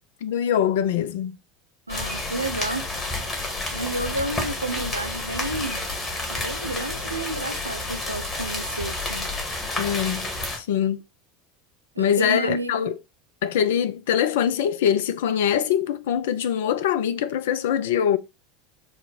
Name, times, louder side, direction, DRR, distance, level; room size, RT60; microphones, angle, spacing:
voice 1, 0.2-1.4 9.8-10.3 10.6-11.0 12.0-13.0 13.4-18.2, left 9 dB, 65° left, 0.4 m, -23 dB
sound 1, 1.9-10.6, left 2 dB, 30° left, 1.4 m, -30 dB
voice 2, 1.9-2.9 3.7-5.9 6.3-9.3 12.0-12.9, right 2 dB, 85° right, 0.4 m, -31 dB
4.4 x 2.1 x 4.0 m
figure-of-eight pair, 75°, 0 cm